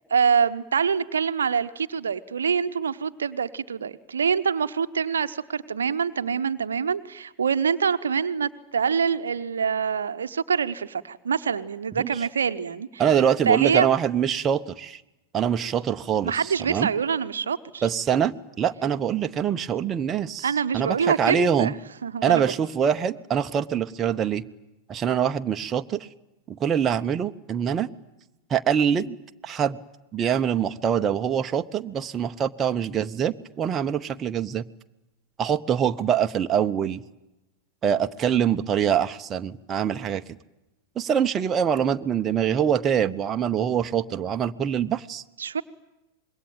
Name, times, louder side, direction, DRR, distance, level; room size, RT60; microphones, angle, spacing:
voice 1, 0.1-13.0 13.5-13.9 16.2-17.8 20.4-21.7 22.0-22.5 45.4-45.6, right 6 dB, 70° right, 12 dB, 0.9 m, -25 dB
voice 2, 13.0-15.0 15.3-16.9 17.8-21.7 22.2-24.4 24.9-26.1 26.5-27.9 28.5-29.2 29.4-29.8 30.1-34.6 35.4-37.0 37.8-40.2 41.0-45.2, right 8 dB, 25° right, 8 dB, 0.8 m, -24 dB
26.0 x 22.0 x 9.1 m, 0.95 s
figure-of-eight pair, 90°, 0 cm